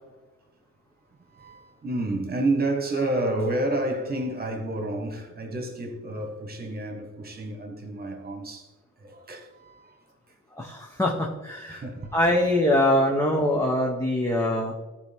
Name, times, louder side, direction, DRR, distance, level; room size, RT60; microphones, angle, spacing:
voice 1, 1.3-8.7 9.0-10.0 11.7-12.5, right 2 dB, 30° right, 1.7 m, -30 dB
voice 2, 10.6-11.8 12.1-14.7, left 1 dB, 10° left, 1.2 m, -23 dB
13.5 x 4.7 x 3.7 m
cardioid pair, 90°, 30 cm